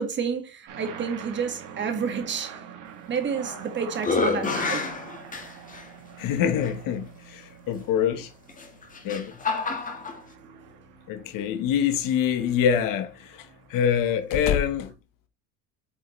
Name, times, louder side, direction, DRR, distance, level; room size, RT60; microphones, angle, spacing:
voice 1, 0.0-2.5 3.1-4.9, right 6 dB, 30° right, 2.0 m, -29 dB
sound 1, 0.7-14.4, right 7 dB, 60° right, 2.8 m, -45 dB
sound 2, 3.2-3.6 4.0-5.8 6.6-6.7 8.5-10.2, left 4 dB, 20° left, 1.7 m, -28 dB
voice 2, 6.2-8.3 9.0-9.4 11.1-14.9, left 8 dB, 55° left, 1.3 m, -25 dB
8.3 x 5.7 x 3.2 m
cardioid pair, 150°, 38 cm